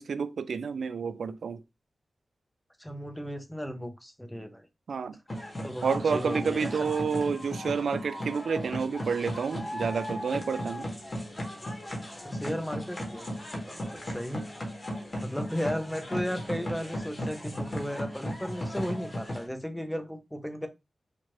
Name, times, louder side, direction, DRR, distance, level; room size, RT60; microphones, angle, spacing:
voice 1, 0.0-1.6 4.9-5.2 5.8-10.9, right 5 dB, 85° right, 0.3 m, -29 dB
voice 2, 2.8-4.7 5.6-6.8 12.2-13.3 13.7-14.4 15.2-20.7, equal, 5° left, 0.5 m, -35 dB
sound 1, 5.3-19.4, equal, 30° left, 0.9 m, -36 dB
4.4 x 2.4 x 3.0 m
wide cardioid pair, 155°, 0 cm